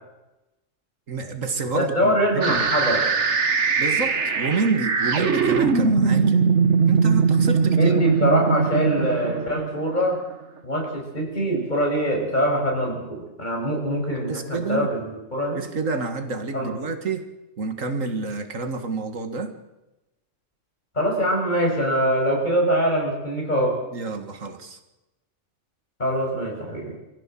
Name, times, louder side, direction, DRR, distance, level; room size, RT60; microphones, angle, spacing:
voice 1, 1.1-2.7 3.8-6.4 6.9-8.0 14.3-14.9 15.5-17.3 17.6-19.6 23.9-24.8, right 4 dB, 80° right, 7 dB, 2.2 m, -28 dB
voice 2, 1.7-3.0 6.1-6.3 7.7-10.2 10.6-15.6 16.5-16.7 20.9-23.8 26.0-27.0, equal, 35° left, -1 dB, 6.2 m, -23 dB
sound 1, 2.4-10.3, right 5 dB, 65° right, 1.8 m, -21 dB
23.5 x 15.5 x 7.6 m, 0.98 s
omnidirectional pair, 1.3 m